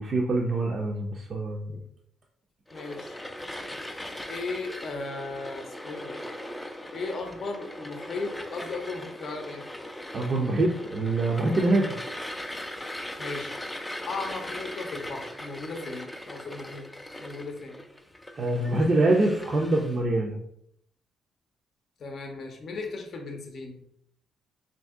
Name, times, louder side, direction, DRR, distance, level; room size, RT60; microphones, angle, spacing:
voice 1, 0.0-1.8 10.1-11.9 18.4-20.4, right 2 dB, 45° right, -1 dB, 0.5 m, -25 dB
voice 2, 2.7-3.2 3.5-3.6 4.3-6.6 6.9-9.6 11.5-11.8 13.2-13.5 14.1-16.9 17.2-17.8 18.2-18.4 22.0-23.8, left 3 dB, 55° left, 3 dB, 0.6 m, -36 dB
sound 1, 2.7-20.0, left 1 dB, 10° left, 0.4 m, -39 dB
2.7 x 2.6 x 3.5 m, 0.71 s
cardioid pair, 95°, 0 cm